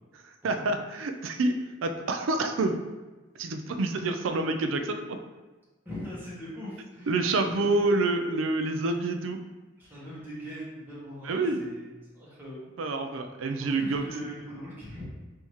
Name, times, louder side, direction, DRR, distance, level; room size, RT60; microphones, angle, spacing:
voice 1, 0.2-2.8 3.4-5.2 7.1-9.4 11.2-11.6 12.8-14.0, right 2 dB, 80° right, 6 dB, 0.4 m, -28 dB
voice 2, 5.8-7.8 9.8-12.7 13.6-15.0, equal, 10° right, -8 dB, 1.1 m, -41 dB
5.5 x 2.8 x 3.1 m, 1.2 s
head